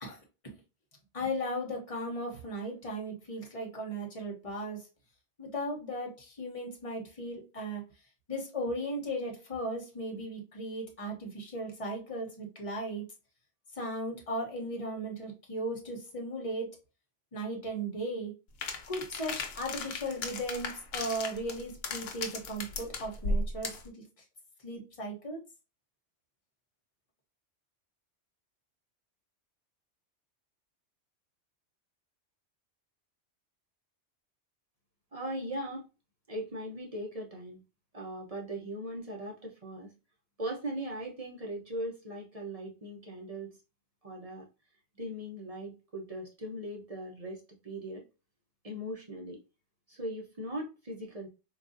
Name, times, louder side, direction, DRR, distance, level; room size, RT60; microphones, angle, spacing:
voice 1, 1.1-4.8 5.4-7.8 8.3-13.0 13.8-16.7 17.3-18.3 18.9-24.0 24.6-25.4, equal, 30° left, 0.8 m, -36 dB
sound 1, 18.6-23.9, left 3 dB, 85° left, 1.0 m, -36 dB
voice 2, 35.1-35.9 36.3-37.6 37.9-39.9 40.4-43.5 44.0-44.5 45.0-48.0 48.6-49.4 49.9-51.3, right 1 dB, 35° right, 0.7 m, -39 dB
3.8 x 2.3 x 2.5 m
omnidirectional pair, 1.2 m